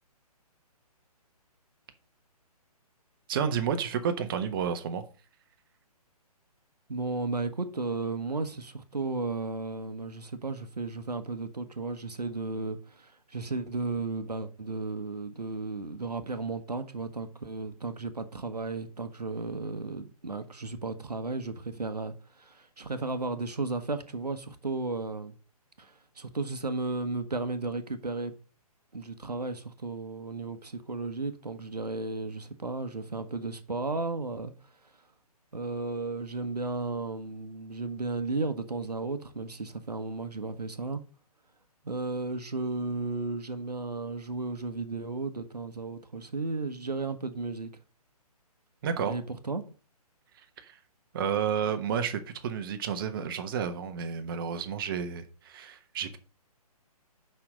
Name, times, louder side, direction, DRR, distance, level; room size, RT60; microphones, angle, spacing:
voice 1, 3.3-5.0 48.8-49.2 50.6-50.8 51.1-56.2, right 7 dB, 35° right, 1.1 m, -31 dB
voice 2, 6.9-25.4 25.8-28.3 28.9-34.5 35.5-41.0 41.8-47.7 49.1-49.6, right 3 dB, 80° right, 1.1 m, -34 dB
5.9 x 5.7 x 6.3 m
figure-of-eight pair, 135°, 20 cm